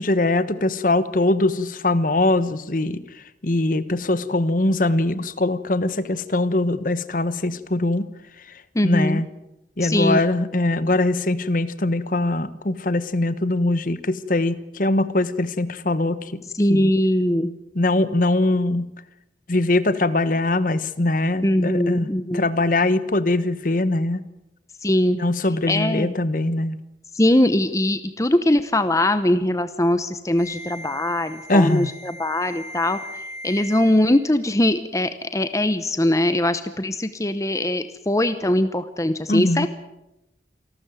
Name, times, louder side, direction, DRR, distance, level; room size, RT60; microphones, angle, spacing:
voice 1, 0.0-3.0 3.4-8.0 8.8-9.3 9.8-16.4 16.7-16.9 17.7-18.9 19.5-22.1 22.3-24.2 25.2-26.8 31.5-31.9 39.3-39.7, left 2 dB, 50° left, 14 dB, 1.2 m, -22 dB
voice 2, 8.7-9.2 9.8-10.2 16.5-17.5 18.5-18.6 21.4-22.5 24.8-25.2 25.7-26.1 27.1-39.7, left 1 dB, 20° left, 11 dB, 0.9 m, -21 dB
sound 1, 30.4-34.3, left 1 dB, 80° right, 6.2 m, -38 dB
27.5 x 12.5 x 9.2 m, 0.90 s
head